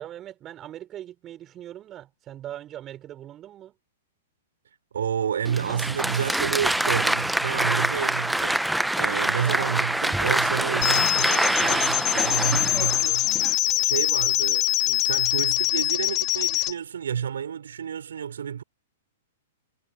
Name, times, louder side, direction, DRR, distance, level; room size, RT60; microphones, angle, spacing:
voice 1, 0.0-3.8 13.6-13.9, right 12 dB, 25° right, 4.4 m, -41 dB
voice 2, 4.9-8.6 9.0-13.4 13.8-18.6, right 8 dB, 65° right, 3.9 m, -30 dB
Applause, 5.4-13.5, right 1 dB, 5° right, 1.0 m, -25 dB
sound 1, 10.8-16.7, left 20 dB, 35° left, 0.7 m, -24 dB
figure-of-eight pair, 110°, 0 cm